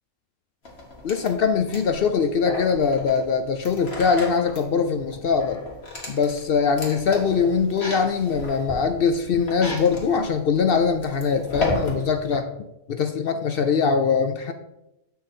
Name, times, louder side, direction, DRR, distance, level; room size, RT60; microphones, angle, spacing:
sound 1, 0.6-12.4, left 2 dB, 45° left, 1.9 m, -34 dB
voice 1, 1.0-5.6 6.1-12.4 12.9-14.5, left 5 dB, 65° left, 7 dB, 0.6 m, -22 dB
6.9 x 5.8 x 4.3 m, 0.90 s
omnidirectional pair, 1.5 m